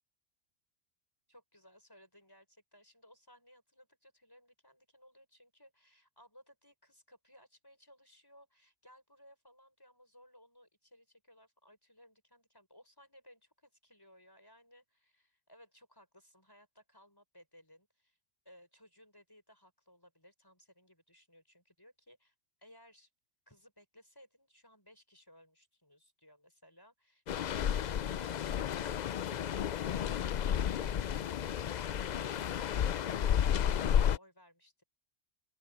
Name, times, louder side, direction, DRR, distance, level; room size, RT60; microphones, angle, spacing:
voice 1, 1.3-18.2 18.4-23.1 23.5-30.1, equal, 15° left, 6.1 m, -61 dB
sound 1, 27.3-34.2, left 9 dB, 75° left, 0.4 m, -32 dB
open air
omnidirectional pair, 1.3 m